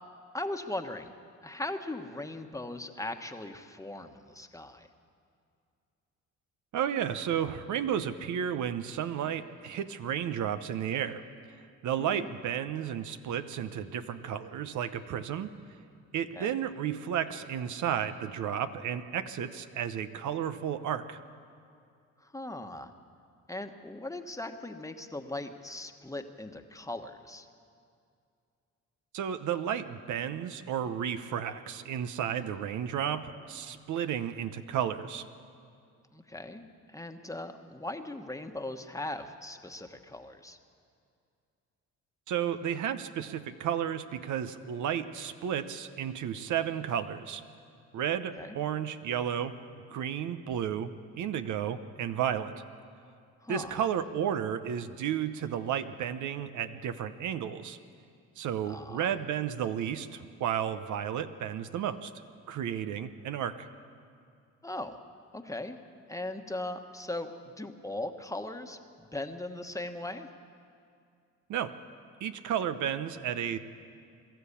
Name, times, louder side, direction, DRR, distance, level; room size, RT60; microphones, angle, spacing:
voice 1, 0.3-1.1 1.4-4.9 12.0-12.3 16.3-16.6 22.2-22.9 23.5-27.5 36.1-36.6 36.9-40.6 48.4-48.6 53.4-53.8 58.6-59.1 64.6-65.0 65.3-65.8 66.1-67.3 67.6-70.3, left 2 dB, 10° left, 5 dB, 1.3 m, -39 dB
voice 2, 6.7-11.2 11.8-15.5 16.1-21.2 29.1-35.3 42.3-47.4 47.9-49.6 49.9-52.6 53.5-57.8 58.4-62.1 62.5-63.7 71.5-71.8 72.2-73.6, right 9 dB, 75° right, 10 dB, 0.9 m, -32 dB
23.0 x 13.5 x 8.5 m, 2.3 s
cardioid pair, 90°, 30 cm